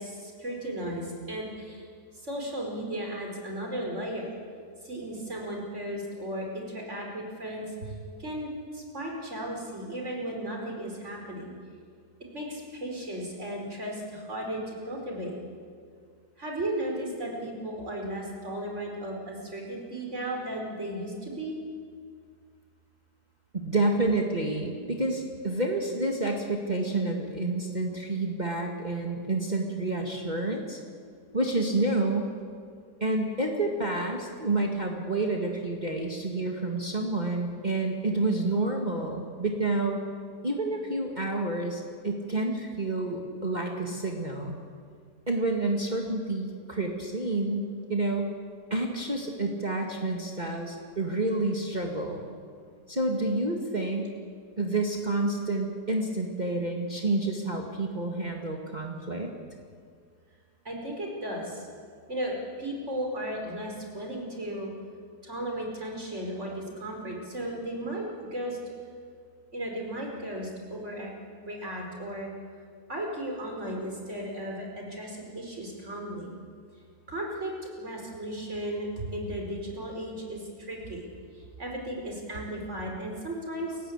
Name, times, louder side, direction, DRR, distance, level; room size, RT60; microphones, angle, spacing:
voice 1, 0.0-1.8 2.2-4.4 4.8-7.9 8.2-11.5 12.3-15.3 16.4-21.6 60.6-61.7 62.1-64.7 65.2-68.1 68.3-68.6 69.5-71.1 71.4-72.3 72.9-76.3 77.1-81.0 81.3-83.8, right 1 dB, 45° right, 0 dB, 5.1 m, -35 dB
voice 2, 23.5-30.8 31.3-32.3 33.0-40.1 40.4-44.5 45.3-48.3 48.7-52.4 52.9-54.1 54.6-59.3, right 2 dB, 25° right, 1 dB, 2.1 m, -29 dB
29.5 x 15.5 x 8.7 m, 2.1 s
omnidirectional pair, 1.7 m